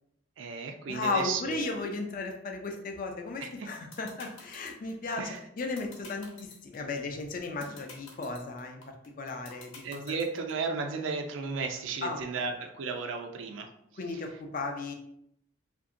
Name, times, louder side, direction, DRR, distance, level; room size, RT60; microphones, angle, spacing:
voice 1, 0.4-1.6 3.4-3.7 5.2-5.4 9.8-13.7, right 4 dB, 75° right, 4 dB, 0.4 m, -34 dB
voice 2, 0.9-5.3 5.6-10.0 12.0-12.5 14.0-14.9, left 3 dB, 45° left, 3 dB, 0.4 m, -35 dB
sound 1, 3.5-10.5, left 4 dB, 80° left, 0.8 m, -48 dB
2.7 x 2.6 x 2.5 m, 0.76 s
head